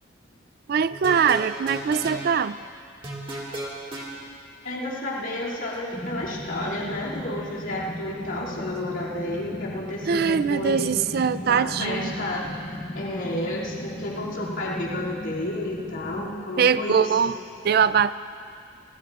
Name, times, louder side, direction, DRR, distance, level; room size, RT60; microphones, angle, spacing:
voice 1, 0.7-2.6 10.1-12.1 16.6-17.3 17.6-18.1, right 7 dB, 50° right, 14 dB, 0.3 m, -22 dB
sound 1, 0.9-2.2 3.0-4.1, right 1 dB, 25° right, 2.0 m, -33 dB
voice 2, 4.6-10.9 11.4-12.5 12.9-17.3, left 1 dB, 85° left, -7 dB, 2.6 m, -31 dB
sound 2, 5.9-16.3, left 1 dB, 30° left, 1.3 m, -36 dB
24.5 x 18.0 x 2.4 m, 2.3 s
head